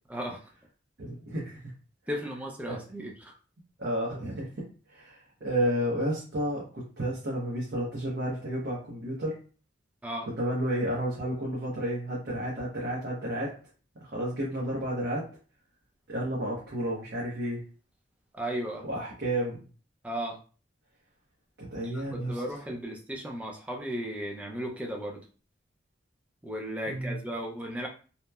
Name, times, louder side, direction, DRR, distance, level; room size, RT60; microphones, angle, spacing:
voice 1, 1.0-1.6 2.7-2.8 3.8-9.4 10.3-13.6 14.0-15.3 16.1-17.6 18.8-19.6 21.6-22.4 26.9-27.2, right 1 dB, 55° right, -6 dB, 0.7 m, -31 dB
voice 2, 2.1-3.3 10.0-10.3 18.3-18.9 20.0-20.4 21.8-25.2 26.4-27.9, equal, 5° right, 1 dB, 0.3 m, -35 dB
2.9 x 2.0 x 2.2 m, 0.39 s
head